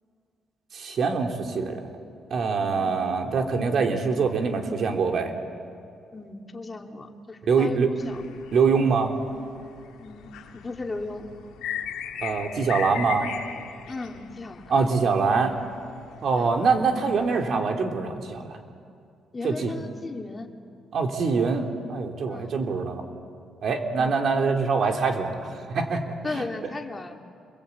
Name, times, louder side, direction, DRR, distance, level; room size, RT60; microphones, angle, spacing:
voice 1, 0.7-1.9 2.3-5.3 7.5-7.9 8.5-9.1 12.2-13.3 14.7-15.5 16.2-18.6 19.4-19.7 20.9-23.0 23.6-26.4, right 5 dB, 60° right, 3 dB, 3.2 m, -24 dB
voice 2, 6.1-7.8 8.0-8.2 10.0-11.3 13.9-14.9 16.3-16.5 19.3-20.5 22.3-22.5 24.0-24.2 26.2-27.2, left 3 dB, 25° left, 2 dB, 2.6 m, -36 dB
sound 1, 8.0-17.5, left 8 dB, 85° left, 1.9 m, -39 dB
28.5 x 21.5 x 8.6 m, 2.4 s
cardioid pair, 90°, 0 cm